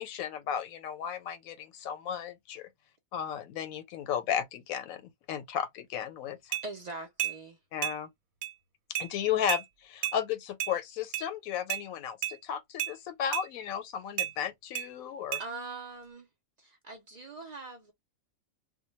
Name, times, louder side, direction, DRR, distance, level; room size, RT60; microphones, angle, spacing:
voice 1, 0.0-2.7 3.1-6.6 7.7-8.1 9.0-15.4, left 9 dB, 90° left, 1.0 m, -34 dB
sound 1, 6.5-6.7 7.2-7.4 7.8-8.0 8.4-8.5 8.9-9.1 9.5-9.6 10.0-10.2 10.6-10.7 11.1-11.3 11.7-11.8 12.2-12.4 12.8-12.9 13.3-13.5 14.2-14.3 14.7-14.9 15.3-15.4, right 11 dB, 85° right, 1.0 m, -32 dB
voice 2, 6.6-7.6 15.4-16.3 16.6-17.9, right 3 dB, 65° right, 0.4 m, -42 dB
2.2 x 2.1 x 3.0 m
omnidirectional pair, 1.4 m